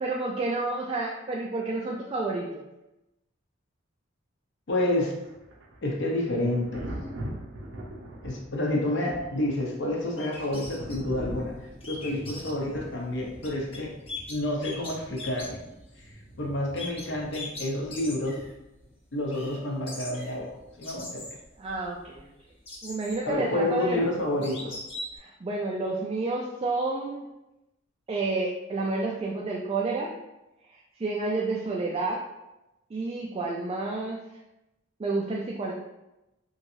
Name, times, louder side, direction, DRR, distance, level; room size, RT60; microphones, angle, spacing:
voice 1, 0.0-2.6 21.6-22.3 22.8-24.0 25.2-27.2 28.1-30.1 31.0-32.2 32.9-34.2 35.0-35.7, right 3 dB, 30° right, -2 dB, 0.3 m, -30 dB
voice 2, 4.7-5.2 5.8-6.8 8.2-11.5 11.9-13.9 14.3-15.6 16.4-18.4 19.1-20.5 20.8-21.2 23.2-24.7, left 1 dB, 65° left, 0 dB, 0.7 m, -29 dB
Thunder, 5.2-18.9 20.5-20.7, right 1 dB, 70° right, 0.6 m, -43 dB
sound 1, 10.2-11.0 11.8-12.5 13.4-13.8 14.1-16.1 16.8-18.5 18.8-18.9 19.3-19.6 19.9-22.2 22.7-23.3 23.8-23.9 24.4-25.2, left 2 dB, 30° left, 0.8 m, -40 dB
3.1 x 2.7 x 2.6 m, 0.95 s
head